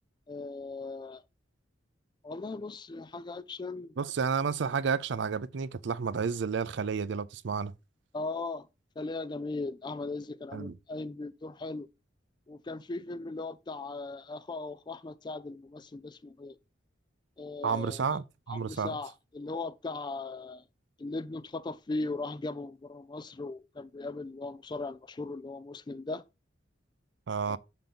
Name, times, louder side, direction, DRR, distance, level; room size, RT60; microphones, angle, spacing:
voice 1, 0.3-1.2 2.2-3.9 8.1-8.7 9.0-11.9 12.5-16.6 17.4-18.1 18.5-20.6 21.0-26.2 27.5-27.6, left 3 dB, 25° left, 0.3 m, -38 dB
voice 2, 4.0-7.7 10.5-10.7 17.6-18.9 27.3-27.6, right 6 dB, 65° right, 0.4 m, -31 dB
5.7 x 3.8 x 5.1 m
head